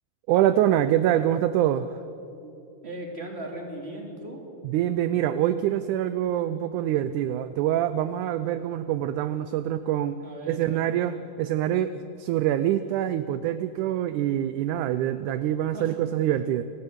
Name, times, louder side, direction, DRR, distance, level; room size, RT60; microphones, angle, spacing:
voice 1, 0.3-1.9 4.6-10.2 10.5-16.6, right 11 dB, 80° right, 13 dB, 1.9 m, -25 dB
voice 2, 2.3-4.5 10.2-11.0 15.7-15.9, right 1 dB, 20° right, 0 dB, 3.1 m, -38 dB
29.5 x 14.0 x 8.1 m, 2.8 s
omnidirectional pair, 3.9 m